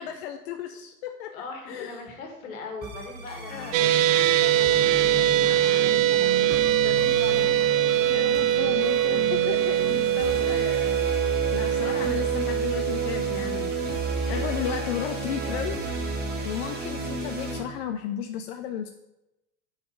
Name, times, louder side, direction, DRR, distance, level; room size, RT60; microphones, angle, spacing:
voice 1, 0.0-2.0 3.5-4.0 8.1-14.0 14.3-15.8 16.4-18.9, left 9 dB, 45° left, 7 dB, 0.5 m, -34 dB
voice 2, 1.3-7.6 8.0-8.1 8.6-8.8 11.8-12.1 14.2-14.4, left 3 dB, 65° left, 2 dB, 1.7 m, -40 dB
sound 1, 2.8-17.6, right 2 dB, 20° right, 1.4 m, -33 dB
Bowed string instrument, 3.4-7.6, left 3 dB, 20° left, 1.3 m, -41 dB
sound 2, 3.7-16.1, right 12 dB, 60° right, 0.6 m, -24 dB
6.7 x 4.0 x 5.1 m, 0.93 s
figure-of-eight pair, 85°, 45 cm